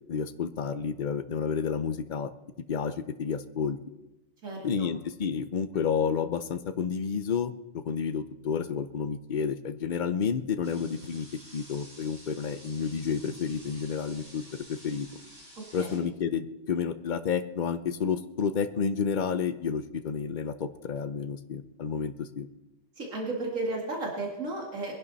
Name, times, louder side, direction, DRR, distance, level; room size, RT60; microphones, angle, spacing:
voice 1, 0.1-2.3 2.7-3.8 4.6-11.3 11.5-14.4 14.7-15.1 15.7-22.5, left 6 dB, 45° left, 11 dB, 0.8 m, -30 dB
voice 2, 4.4-4.9 15.6-16.1 23.0-25.0, right 2 dB, 90° right, -1 dB, 2.5 m, -34 dB
sound 1, 10.6-16.0, equal, 70° right, 6.1 m, -51 dB
22.5 x 11.0 x 4.1 m, 0.98 s
omnidirectional pair, 1.3 m